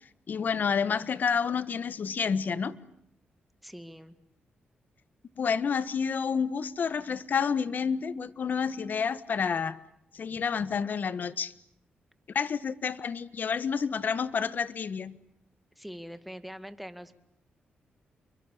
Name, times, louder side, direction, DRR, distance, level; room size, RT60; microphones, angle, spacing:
voice 1, 0.3-2.8 5.4-9.8 10.1-11.5 12.3-15.1, left 6 dB, 60° left, 15 dB, 1.4 m, -29 dB
voice 2, 3.6-4.1 10.3-10.4 15.8-17.1, equal, ahead, 10 dB, 2.1 m, -43 dB
29.0 x 23.5 x 8.7 m, 0.76 s
cardioid pair, 75°, 4 cm